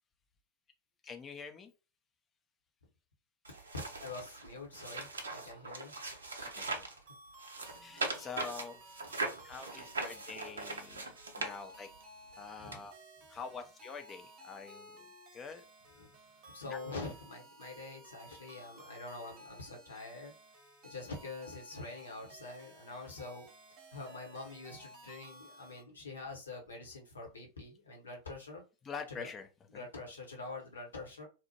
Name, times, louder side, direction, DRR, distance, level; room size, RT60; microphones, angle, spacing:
voice 1, 1.0-1.7 6.4-6.7 7.7-8.8 9.4-11.9 12.4-12.9 13.3-15.6 16.7-16.8 28.8-29.9, left 5 dB, 20° left, 0.4 m, -46 dB
sound 1, 3.4-7.0 7.4-12.0 12.7-12.8, right 3 dB, 75° right, 0.5 m, -40 dB
voice 2, 4.0-5.9 6.6-6.9 12.6-12.8 15.9-16.1 16.5-20.3 20.8-23.5 23.9-28.6 29.1-29.3 29.7-31.3, left 3 dB, 70° left, 0.8 m, -45 dB
sound 2, 7.1-25.8, right 1 dB, 35° right, 0.7 m, -56 dB
2.7 x 2.1 x 2.8 m
figure-of-eight pair, 90°, 0 cm